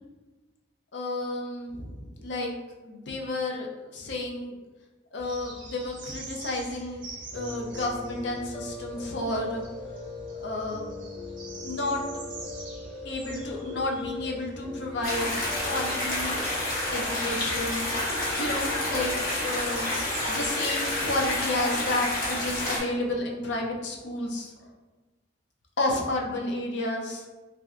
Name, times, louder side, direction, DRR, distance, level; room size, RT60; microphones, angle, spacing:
voice 1, 0.9-2.5 2.8-4.5 5.1-7.0 7.3-9.6 10.4-10.9 11.6-12.0 13.0-16.4 16.9-17.9 18.4-19.1 19.4-19.9 20.3-24.5 25.8-27.3, left 2 dB, 65° left, 1 dB, 0.5 m, -31 dB
sound 1, 5.2-22.4, right 2 dB, 45° right, 0.6 m, -46 dB
Piano, 7.3-21.0, left 3 dB, 10° left, 0.6 m, -40 dB
sound 2, 15.0-22.8, left 1 dB, 50° left, 0.9 m, -29 dB
3.1 x 2.7 x 2.4 m, 1.2 s
head